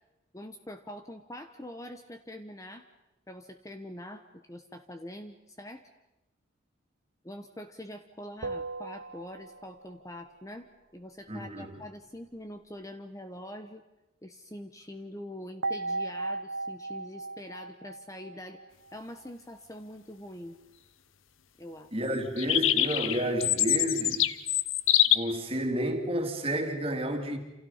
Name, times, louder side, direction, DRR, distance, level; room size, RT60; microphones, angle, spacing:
voice 1, 0.3-2.8 3.3-5.8 7.2-13.8 14.2-18.6 18.9-20.6 21.6-21.9, left 1 dB, 15° left, 1.1 m, -44 dB
sound 1, 8.4-10.0 15.6-19.0, right 3 dB, 75° right, 0.8 m, -36 dB
voice 2, 11.3-11.8 21.9-24.3 25.1-27.4, right 1 dB, 30° right, 2.9 m, -31 dB
sound 2, 22.4-25.2, left 13 dB, 85° left, 0.9 m, -24 dB
28.5 x 28.0 x 5.7 m
head